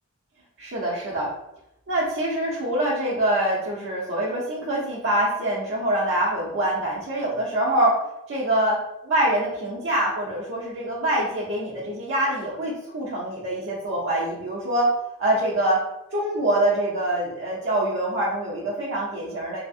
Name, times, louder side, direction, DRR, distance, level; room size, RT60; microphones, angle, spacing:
voice 1, 0.6-1.3 1.9-14.9 15.2-15.8 16.1-19.6, right 1 dB, 55° right, -6 dB, 0.6 m, -25 dB
2.8 x 2.4 x 2.6 m, 0.90 s
head